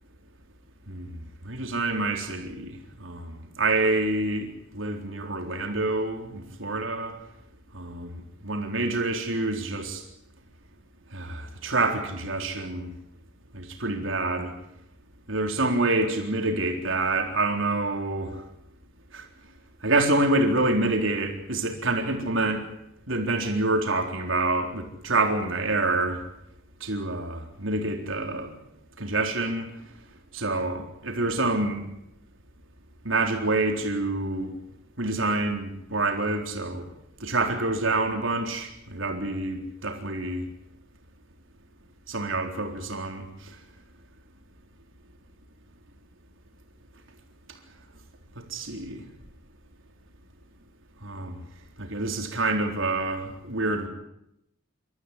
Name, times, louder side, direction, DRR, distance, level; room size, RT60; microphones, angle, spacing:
voice 1, 0.9-1.2 1.5-4.5 4.7-7.1 7.7-10.0 11.1-12.9 13.5-14.5 15.3-18.4 19.1-19.2 19.8-22.7 23.1-26.2 26.8-28.5 29.0-29.7 30.3-31.9 33.0-34.5 35.0-36.8 37.2-40.4 42.1-43.3 48.4-49.0 51.0-51.4 51.8-53.9, right 2 dB, 80° right, 3 dB, 3.9 m, -27 dB
28.5 x 14.0 x 9.9 m, 0.82 s
head